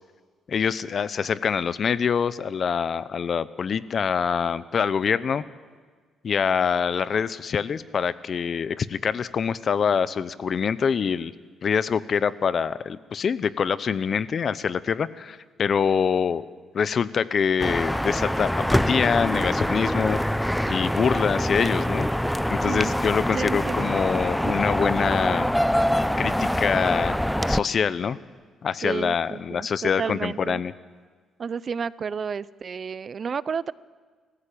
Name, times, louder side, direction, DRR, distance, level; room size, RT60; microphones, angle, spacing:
voice 1, 0.5-5.4 6.2-11.3 11.6-16.4 16.7-20.2 20.7-22.1 22.5-25.5 26.2-27.2 27.5-28.2 28.6-30.7, left 6 dB, 50° left, 16 dB, 0.8 m, -25 dB
sound 1, 17.6-27.6, equal, 5° left, 0.6 m, -24 dB
voice 2, 22.6-23.0 23.3-23.9 24.4-24.6 28.8-30.6 31.4-33.7, right 6 dB, 45° right, 19 dB, 0.6 m, -31 dB
28.5 x 15.0 x 8.6 m, 1.5 s
cardioid pair, 90°, 0 cm